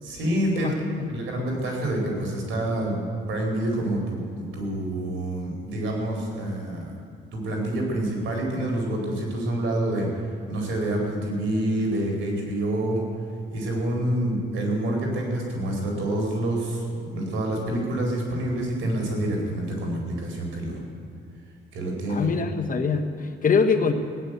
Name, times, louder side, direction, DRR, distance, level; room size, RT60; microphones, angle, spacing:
voice 1, 0.0-0.7 1.1-6.9 7.3-10.1 10.5-13.0 13.5-20.8 21.7-22.3, right 1 dB, 75° right, 0 dB, 4.5 m, -27 dB
voice 2, 22.1-23.9, left 5 dB, 45° left, 6 dB, 1.3 m, -23 dB
17.0 x 9.7 x 8.1 m, 2.3 s
cardioid pair, 90°, 20 cm